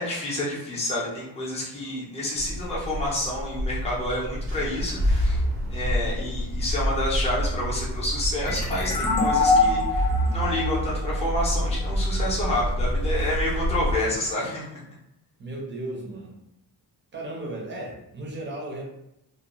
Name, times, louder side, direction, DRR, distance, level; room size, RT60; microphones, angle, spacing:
voice 1, 0.0-5.4 5.7-14.8, left 1 dB, 15° left, -5 dB, 0.6 m, -29 dB
sound 1, 2.4-13.9, equal, 75° right, 0.8 m, -27 dB
sound 2, 8.4-11.9, left 3 dB, 65° left, 0.6 m, -24 dB
voice 2, 15.4-16.3 17.1-18.8, right 1 dB, 30° right, -2 dB, 0.6 m, -35 dB
2.4 x 2.2 x 2.9 m, 0.82 s
wide cardioid pair, 170°, 39 cm